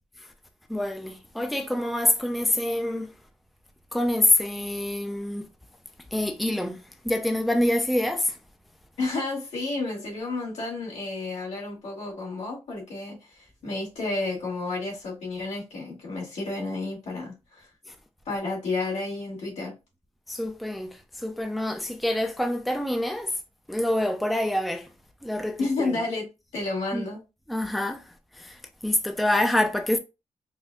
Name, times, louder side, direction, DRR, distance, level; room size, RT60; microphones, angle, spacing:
voice 1, 0.7-3.1 3.9-5.5 6.1-6.8 7.0-8.3 20.3-23.3 23.7-24.9 25.2-25.9 26.9-27.0 27.5-28.0 28.4-28.6 28.8-30.0, left 1 dB, ahead, 0.5 m, -26 dB
voice 2, 9.0-17.7 18.3-19.7 25.6-27.2, left 3 dB, 80° left, 2.0 m, -31 dB
4.1 x 2.5 x 2.3 m
cardioid pair, 75°, 12 cm